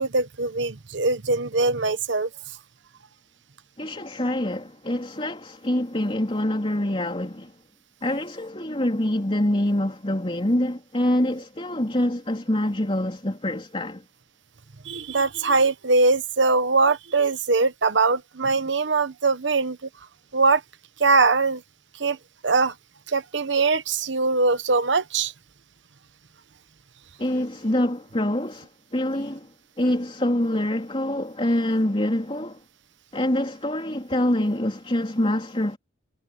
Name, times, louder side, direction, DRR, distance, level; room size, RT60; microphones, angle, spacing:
voice 1, 0.0-2.3 14.9-19.8 20.3-20.6 21.0-21.6 22.0-22.2 22.4-22.7 23.1-25.3, right 3 dB, 70° right, 1.1 m, -22 dB
voice 2, 3.8-7.5 8.0-14.0 27.2-29.5 29.8-32.6 33.1-35.8, left 1 dB, 30° left, 3.7 m, -25 dB
head